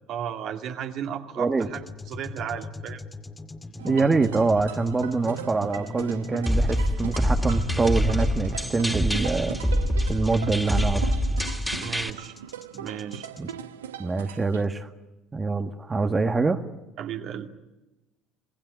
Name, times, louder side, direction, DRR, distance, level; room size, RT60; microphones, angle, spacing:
voice 1, 0.1-3.1 11.8-12.3 12.7-13.3 17.0-17.5, right 9 dB, 55° right, 4 dB, 2.3 m, -34 dB
voice 2, 1.4-1.7 3.8-9.6 10.1-11.1 13.4-13.5 14.0-14.9 15.3-16.6, right 3 dB, 25° right, 6 dB, 1.6 m, -25 dB
sound 1, 1.6-13.5, left 2 dB, 20° left, 2.3 m, -40 dB
sound 2, 3.8-14.6, right 10 dB, 80° right, 0.9 m, -39 dB
sound 3, 6.5-12.1, equal, ahead, 2.8 m, -25 dB
27.0 x 19.5 x 9.6 m, 1.0 s
figure-of-eight pair, 60°, 0 cm